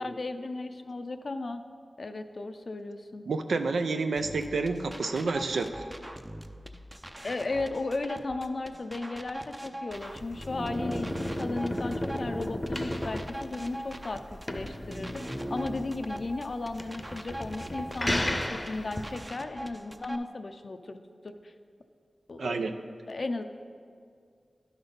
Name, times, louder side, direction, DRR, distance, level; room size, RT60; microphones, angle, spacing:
voice 1, 0.0-1.6 2.0-3.2 7.2-21.0 21.2-21.5 22.3-22.6 23.1-23.4, left 2 dB, 65° left, 8 dB, 0.4 m, -35 dB
voice 2, 3.3-5.8 22.4-22.7, right 3 dB, 90° right, 7 dB, 0.4 m, -29 dB
sound 1, 4.2-20.2, right 1 dB, 20° right, 0.5 m, -43 dB
sound 2, 9.9-19.2, left 1 dB, 20° left, 0.7 m, -34 dB
11.0 x 4.0 x 5.2 m, 2.2 s
cardioid pair, 40°, 0 cm